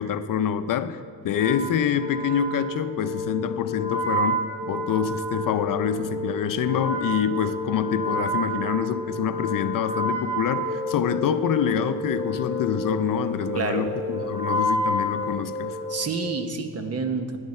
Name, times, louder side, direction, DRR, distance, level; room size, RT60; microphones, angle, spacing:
voice 1, 0.0-15.8, left 8 dB, 60° left, 0.6 m, -26 dB
Wind instrument woodwind instrument, 1.3-16.0, equal, 15° right, 3.6 m, -30 dB
sound 1, 10.6-16.6, equal, 20° left, 0.6 m, -36 dB
voice 2, 13.5-13.9 15.9-17.4, right 4 dB, 45° right, 1.1 m, -28 dB
15.5 x 10.5 x 4.3 m
cardioid pair, 115°, 36 cm